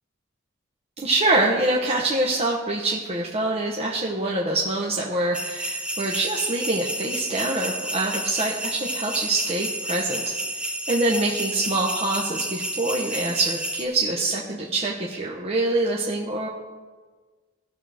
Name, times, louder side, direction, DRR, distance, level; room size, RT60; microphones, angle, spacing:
voice 1, 1.0-16.5, right 2 dB, 30° right, -2 dB, 0.8 m, -25 dB
sound 1, 5.3-13.9, right 1 dB, 5° right, 0.6 m, -30 dB
16.5 x 6.3 x 3.4 m, 1.4 s
head